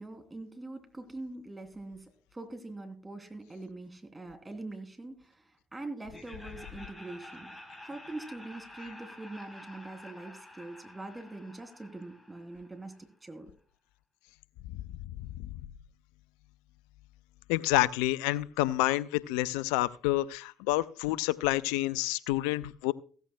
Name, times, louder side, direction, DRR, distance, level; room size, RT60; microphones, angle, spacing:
voice 1, 0.0-7.5 7.8-13.5, right 2 dB, 20° right, 6 dB, 3.1 m, -43 dB
Laughter, 6.1-13.0, left 1 dB, 15° left, 4.1 m, -50 dB
voice 2, 17.5-22.9, left 17 dB, 75° left, 20 dB, 0.5 m, -28 dB
15.5 x 15.0 x 2.3 m, 0.42 s
hypercardioid pair, 50°, 0 cm